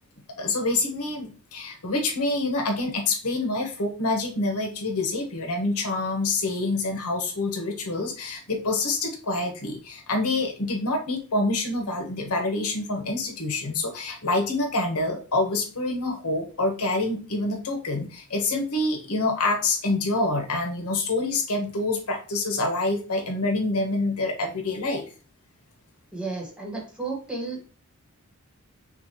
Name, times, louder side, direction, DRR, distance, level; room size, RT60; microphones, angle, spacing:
voice 1, 0.4-25.0, left 2 dB, 80° left, 3 dB, 1.2 m, -26 dB
voice 2, 26.1-27.6, right 3 dB, 5° right, -3 dB, 1.3 m, -32 dB
6.5 x 2.5 x 3.0 m, 0.37 s
head